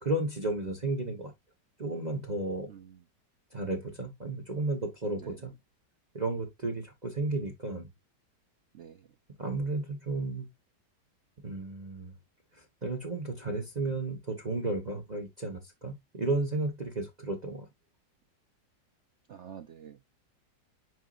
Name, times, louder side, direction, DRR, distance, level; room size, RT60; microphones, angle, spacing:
voice 1, 0.0-1.3 1.8-2.7 3.5-5.5 6.1-7.9 9.4-10.5 11.4-12.1 12.5-17.7, right 2 dB, 25° right, 1.2 m, -33 dB
voice 2, 2.7-3.0 5.1-5.4 8.7-9.1 19.3-20.1, right 8 dB, 65° right, 0.7 m, -48 dB
9.3 x 4.6 x 2.5 m
omnidirectional pair, 1.9 m